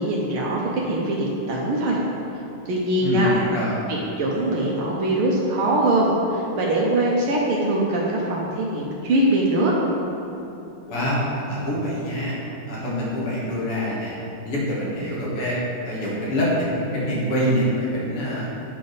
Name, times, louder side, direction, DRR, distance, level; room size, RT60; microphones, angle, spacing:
voice 1, 0.0-2.0 2.7-3.3 3.9-9.7, right 1 dB, 75° right, -3 dB, 1.7 m, -22 dB
voice 2, 3.0-3.7 10.9-12.3 12.7-14.2 14.5-15.6 15.8-16.7 16.9-18.5, equal, 90° left, -7 dB, 2.8 m, -25 dB
8.7 x 5.1 x 4.0 m, 2.9 s
omnidirectional pair, 2.4 m